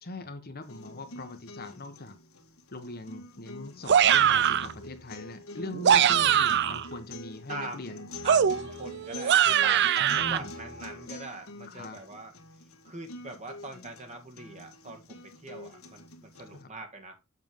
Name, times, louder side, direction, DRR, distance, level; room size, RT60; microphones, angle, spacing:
voice 1, 0.0-2.2 2.7-8.1 10.0-10.5 11.6-12.0 16.5-16.7, left 2 dB, 45° left, 1.2 m, -41 dB
sound 1, 0.6-16.6, left 1 dB, 85° left, 1.8 m, -45 dB
sound 2, 3.9-4.7 5.7-6.9 8.3-10.4, right 9 dB, 55° right, 0.5 m, -22 dB
voice 2, 4.2-4.5 5.9-6.1 7.5-12.3 12.8-17.2, right 2 dB, 35° right, 1.9 m, -42 dB
7.6 x 6.8 x 3.7 m
head